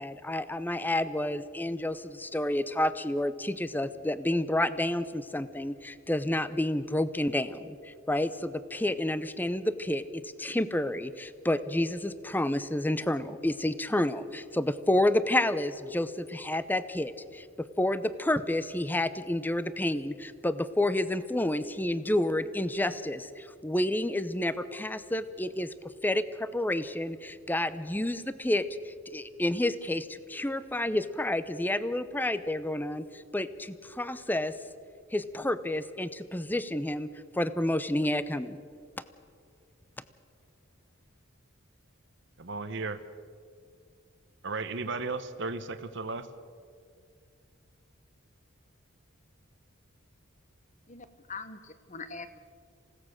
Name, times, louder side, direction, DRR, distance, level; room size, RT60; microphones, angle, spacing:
voice 1, 0.0-25.7 26.0-34.5 35.1-37.1 37.3-38.6, left 1 dB, 10° left, 14 dB, 0.6 m, -30 dB
voice 2, 42.4-43.0 44.4-46.3, right 3 dB, 60° right, 10 dB, 1.1 m, -34 dB
voice 3, 50.9-52.4, left 4 dB, 35° left, 11 dB, 1.2 m, -43 dB
28.0 x 16.5 x 6.5 m, 2.2 s
head